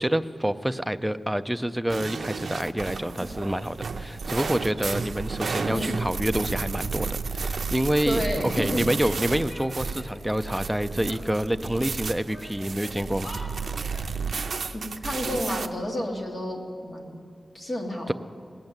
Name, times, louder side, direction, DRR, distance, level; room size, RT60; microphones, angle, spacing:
voice 1, 0.0-8.2 8.5-13.3 18.1-18.2, equal, 5° right, 10 dB, 0.4 m, -27 dB
sound 1, 1.9-15.7, right 4 dB, 65° right, 0.5 m, -32 dB
voice 2, 8.1-8.8 14.7-17.2 17.5-18.1, left 1 dB, 35° left, 1 dB, 1.9 m, -30 dB
Female speech woman speaking / Yell, 9.0-10.2 10.5-12.0 12.3-14.1, left 1 dB, 80° left, 4.3 m, -45 dB
18.0 x 7.9 x 8.9 m, 2.3 s
wide cardioid pair, 160°, 0 cm